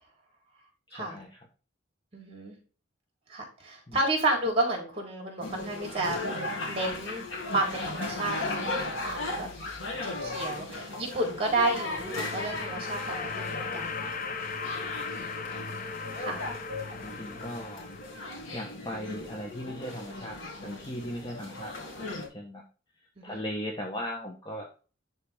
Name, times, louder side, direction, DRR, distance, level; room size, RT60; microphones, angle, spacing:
voice 1, 0.9-1.5 3.9-4.0 14.7-15.0 17.0-17.9 18.5-22.6 23.0-24.7, equal, 20° left, 0 dB, 1.2 m, -39 dB
voice 2, 2.1-2.6 3.3-6.2 6.7-8.7 9.0-9.5 10.0-14.1 15.4-15.6 16.2-16.4 23.2-23.4, right 2 dB, 30° right, 0 dB, 3.8 m, -31 dB
sound 1, 5.4-22.3, left 2 dB, 75° left, 2.5 m, -37 dB
sound 2, 11.4-18.5, left 4 dB, 45° left, 0.9 m, -38 dB
11.5 x 4.2 x 3.6 m, 0.35 s
head